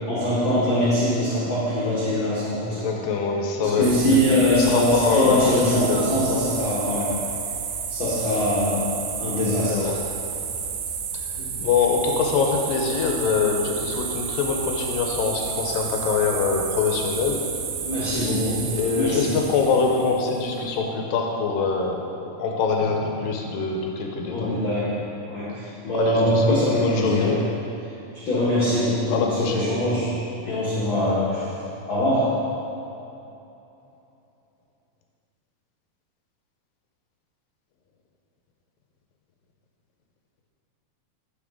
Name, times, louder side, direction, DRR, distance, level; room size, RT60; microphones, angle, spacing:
voice 1, 0.1-2.9 3.6-7.1 7.9-8.8 9.2-9.9 11.3-11.6 17.8-19.3 24.3-24.9 25.3-27.3 28.1-30.1 30.4-31.4 31.9-32.3, left 1 dB, 50° left, -9 dB, 1.6 m, -23 dB
voice 2, 2.7-6.2 9.7-10.0 11.6-17.5 18.7-24.5 25.9-27.4 29.1-29.7, left 5 dB, 80° left, 1 dB, 2.5 m, -24 dB
sound 1, 3.8-20.5, right 6 dB, 80° right, 2.4 m, -31 dB
13.0 x 5.8 x 3.7 m, 3.0 s
omnidirectional pair, 4.1 m